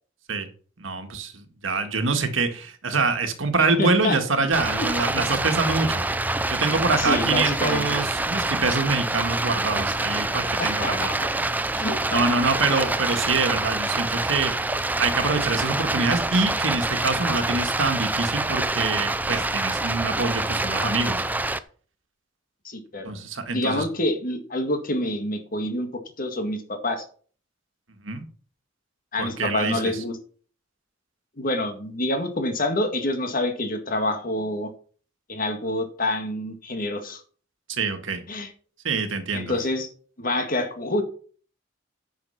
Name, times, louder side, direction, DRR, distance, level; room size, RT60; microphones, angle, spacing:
voice 1, 0.8-6.0 6.5-11.5 12.1-14.6 15.0-21.2 23.0-23.8 28.0-28.2 29.2-29.8 37.7-38.2 38.8-39.5, right 3 dB, 90° right, 6 dB, 1.8 m, -25 dB
voice 2, 3.8-4.2 4.7-4.9 7.0-7.8 10.6-11.2 11.7-12.2 22.6-23.1 23.5-25.9 26.2-27.0 29.1-30.2 31.4-34.7 35.3-37.2 38.3-38.5 39.3-39.9 40.2-41.0, left 1 dB, 45° left, 6 dB, 1.9 m, -27 dB
Stream, 4.5-21.6, right 2 dB, 10° right, 0.5 m, -26 dB
9.8 x 6.5 x 5.7 m, 0.44 s
head